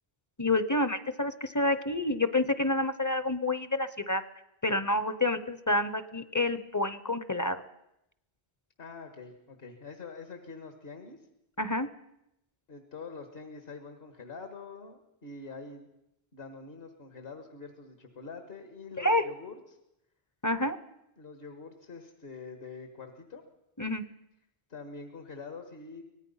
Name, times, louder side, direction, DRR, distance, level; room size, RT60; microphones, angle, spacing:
voice 1, 0.4-4.2 4.6-7.6 11.6-11.9 19.0-19.2 20.4-20.8 23.8-24.0, left 2 dB, 20° left, 12 dB, 0.7 m, -28 dB
voice 2, 8.8-11.2 12.7-15.9 16.3-19.5 21.2-23.4 24.7-26.0, left 4 dB, 65° left, 6 dB, 2.0 m, -45 dB
24.5 x 18.5 x 5.7 m, 0.84 s
omnidirectional pair, 1.1 m